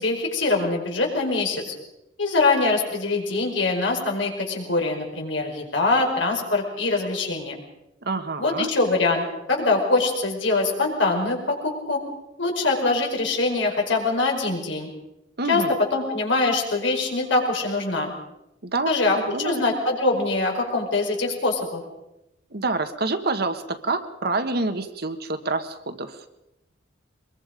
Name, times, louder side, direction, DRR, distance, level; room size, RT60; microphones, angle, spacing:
voice 1, 0.0-1.7 2.2-7.5 8.4-12.0 12.4-14.9 15.5-15.6 15.9-18.1 18.8-21.8, left 3 dB, 85° left, 1 dB, 5.1 m, -23 dB
voice 2, 8.0-8.7 15.4-15.7 18.6-19.6 22.5-26.2, right 3 dB, 60° right, 8 dB, 1.5 m, -27 dB
23.0 x 22.5 x 5.1 m, 0.91 s
head